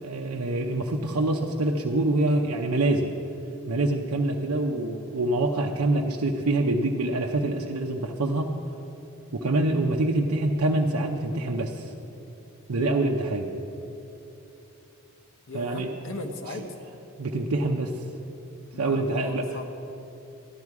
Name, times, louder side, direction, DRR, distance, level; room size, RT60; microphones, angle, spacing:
voice 1, 0.0-3.1 3.7-8.5 9.3-11.9 12.7-13.5 15.5-15.9 17.2-17.9 18.8-19.5, right 2 dB, 80° right, 0 dB, 0.7 m, -25 dB
voice 2, 15.5-16.7 18.7-19.7, left 2 dB, 60° left, 3 dB, 0.9 m, -37 dB
13.5 x 11.0 x 4.8 m, 3.0 s
head